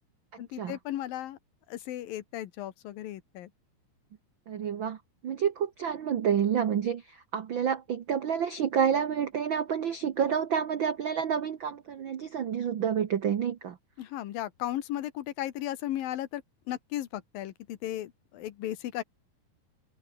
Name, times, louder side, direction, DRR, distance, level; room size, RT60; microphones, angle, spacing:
voice 1, 0.4-1.4 1.7-3.5 14.0-16.4 16.7-19.0, left 13 dB, 85° left, 3.1 m, -35 dB
voice 2, 4.5-5.0 5.2-13.8, right 8 dB, 80° right, 1.1 m, -29 dB
omnidirectional pair, 4.0 m